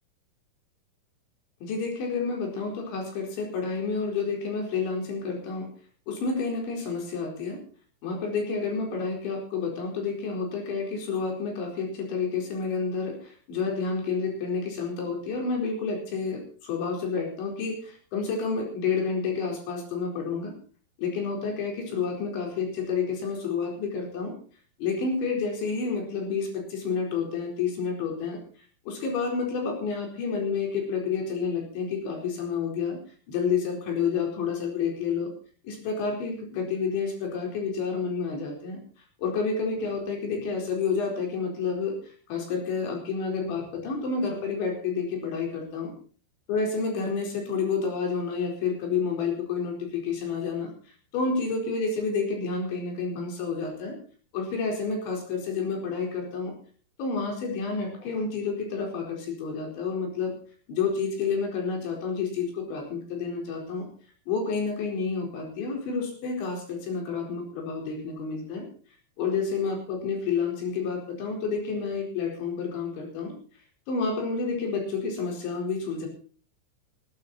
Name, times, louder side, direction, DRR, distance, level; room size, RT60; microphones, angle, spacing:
voice 1, 1.6-5.7 6.1-7.6 8.0-20.5 21.0-24.3 24.8-28.4 28.9-33.0 33.3-35.3 35.6-38.8 39.2-42.0 42.3-45.9 46.5-50.7 51.1-54.0 54.3-56.5 57.0-60.3 60.7-63.9 64.3-68.7 69.2-73.4 73.9-76.1, left 5 dB, 85° left, 2 dB, 6.8 m, -29 dB
20.5 x 11.5 x 4.3 m, 0.41 s
omnidirectional pair, 5.1 m